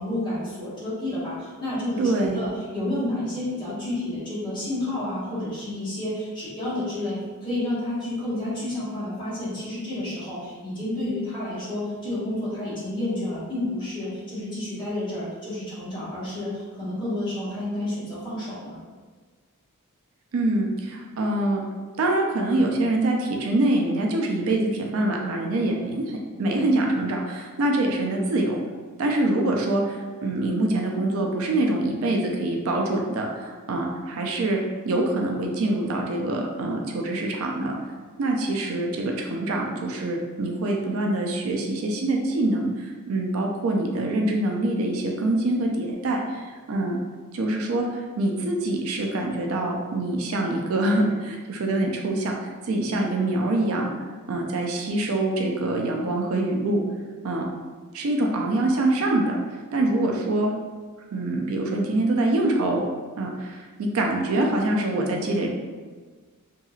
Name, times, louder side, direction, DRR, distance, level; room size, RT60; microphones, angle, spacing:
voice 1, 0.0-18.8, left 1 dB, 20° left, -11 dB, 1.2 m, -30 dB
voice 2, 2.0-2.4 20.3-21.6 22.0-28.6 29.0-34.6 34.8-37.8 38.2-47.0 47.3-53.9 54.3-56.8 57.2-57.5 57.9-59.4 59.7-60.5 61.1-62.8 63.2-65.5, right 2 dB, 70° right, 1 dB, 0.4 m, -25 dB
2.8 x 2.8 x 2.4 m, 1.4 s
head